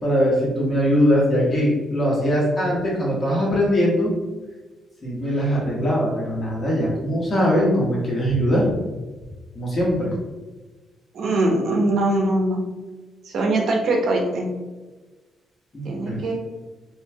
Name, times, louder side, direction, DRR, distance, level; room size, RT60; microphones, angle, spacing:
voice 1, 0.0-4.1 5.0-8.7 9.5-10.1 15.7-16.2, equal, 35° left, -5 dB, 1.4 m, -21 dB
voice 2, 11.1-12.6 13.2-14.5 15.8-16.3, right 2 dB, 65° right, 0 dB, 0.8 m, -22 dB
3.1 x 3.1 x 2.2 m, 1.2 s
cardioid pair, 90°, 0 cm